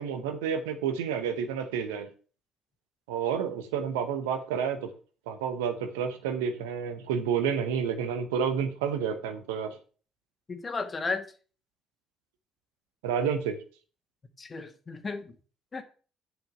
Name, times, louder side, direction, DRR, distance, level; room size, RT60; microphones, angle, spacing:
voice 1, 0.0-2.1 3.1-4.9 5.3-9.8 13.0-13.5, right 7 dB, 85° right, 9 dB, 1.0 m, -30 dB
voice 2, 10.5-11.2 14.4-15.3 15.7-15.8, left 4 dB, 35° left, 7 dB, 1.7 m, -34 dB
7.7 x 5.1 x 6.5 m, 0.38 s
hypercardioid pair, 50°, 0 cm